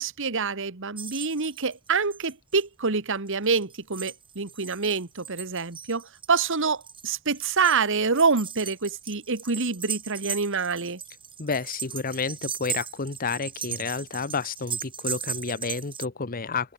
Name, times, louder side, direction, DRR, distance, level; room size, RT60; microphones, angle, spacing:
voice 1, 0.0-11.0, right 4 dB, 60° right, 1.6 m, -26 dB
sound 1, 1.0-2.6 3.3-16.1, right 7 dB, 25° right, 4.3 m, -37 dB
voice 2, 11.4-16.7, left 4 dB, 40° left, 1.0 m, -30 dB
head